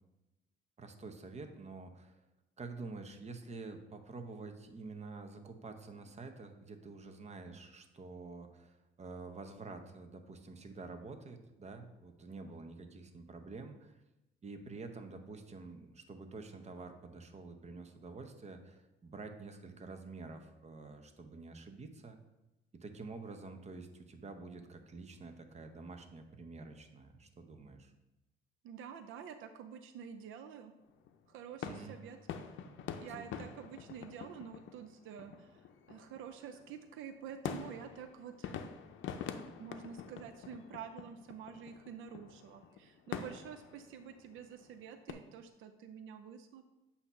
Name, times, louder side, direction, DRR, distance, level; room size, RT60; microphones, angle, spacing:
voice 1, 0.8-2.2 2.6-13.9 14.4-22.2 22.7-27.9 31.6-32.0 33.2-33.5, right 3 dB, 35° right, 6 dB, 0.8 m, -48 dB
voice 2, 28.6-30.7 31.3-32.2 33.0-38.8 39.6-46.6, right 7 dB, 85° right, 9 dB, 0.5 m, -48 dB
sound 1, 30.8-45.1, left 8 dB, 75° left, 0.5 m, -46 dB
8.0 x 2.8 x 5.6 m, 0.97 s
cardioid pair, 90°, 20 cm